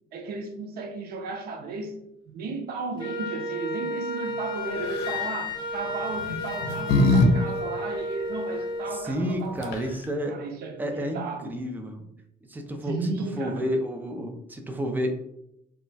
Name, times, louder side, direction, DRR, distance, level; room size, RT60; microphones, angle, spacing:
voice 1, 0.1-2.0 2.3-10.0 10.3-11.6 12.8-13.7, right 4 dB, 65° right, 0.5 m, -34 dB
Wind instrument woodwind instrument, 3.0-9.1, left 1 dB, 25° left, 0.8 m, -32 dB
sound 1, 4.8-5.2 6.2-7.3 7.6-7.7 9.3-9.4 9.6-10.1, left 2 dB, 85° left, 0.6 m, -22 dB
voice 2, 8.9-10.4 10.8-12.1 12.5-13.1 13.4-15.1, equal, 10° right, 0.5 m, -30 dB
2.3 x 2.1 x 3.9 m
cardioid pair, 110°, 17 cm